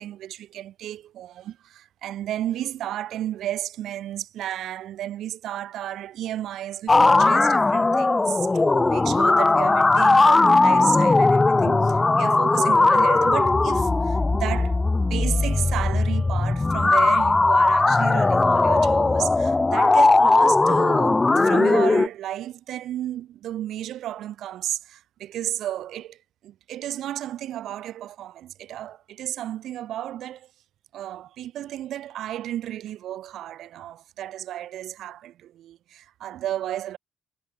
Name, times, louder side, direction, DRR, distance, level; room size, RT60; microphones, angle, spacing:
voice 1, 0.0-26.2 26.4-30.5 30.9-37.0, right 12 dB, 80° right, 4.0 m, -33 dB
sound 1, 6.9-22.1, left 3 dB, 20° left, 0.4 m, -19 dB
cardioid pair, 90°, 0 cm